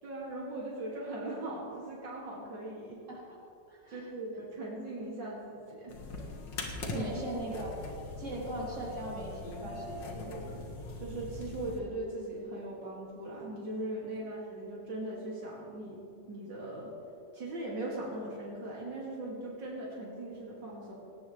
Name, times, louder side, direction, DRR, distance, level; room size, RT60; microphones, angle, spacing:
voice 1, 0.0-3.0 3.9-5.9 6.9-7.2 10.1-10.6 11.0-16.0 16.3-16.9 17.3-21.0, right 1 dB, 85° right, -5 dB, 3.1 m, -39 dB
voice 2, 3.7-4.1 6.9-7.7 8.2-10.5, right 1 dB, 40° right, -6 dB, 4.0 m, -39 dB
sound 1, 5.9-11.8, left 2 dB, 90° left, 2.3 m, -41 dB
18.0 x 17.5 x 3.3 m, 2.7 s
omnidirectional pair, 1.9 m